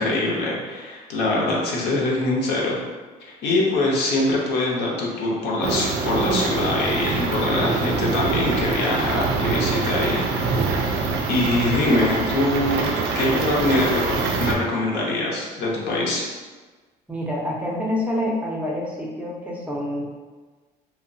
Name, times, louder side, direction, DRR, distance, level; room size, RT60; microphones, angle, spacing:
voice 1, 0.0-2.8 3.2-10.3 11.3-12.9 13.1-16.3, left 2 dB, 80° left, -3 dB, 0.7 m, -23 dB
sound 1, 5.6-14.5, right 4 dB, 80° right, 0.4 m, -24 dB
voice 2, 17.1-20.1, left 1 dB, 10° right, -3 dB, 0.5 m, -27 dB
2.7 x 2.0 x 2.6 m, 1.3 s
cardioid pair, 110°, 17 cm